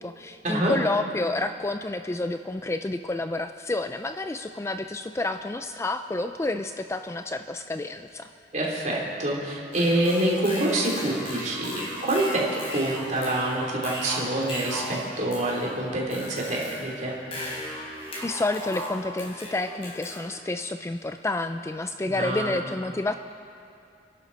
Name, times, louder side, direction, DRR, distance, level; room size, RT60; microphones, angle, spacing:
voice 1, 0.0-8.3 18.2-23.1, left 2 dB, 15° left, 8 dB, 0.3 m, -29 dB
voice 2, 8.5-17.1 22.0-22.5, right 1 dB, 40° right, -3 dB, 3.4 m, -26 dB
sound 1, 9.7-20.2, equal, 30° left, 3.8 m, -37 dB
30.0 x 11.5 x 4.2 m, 2.5 s
head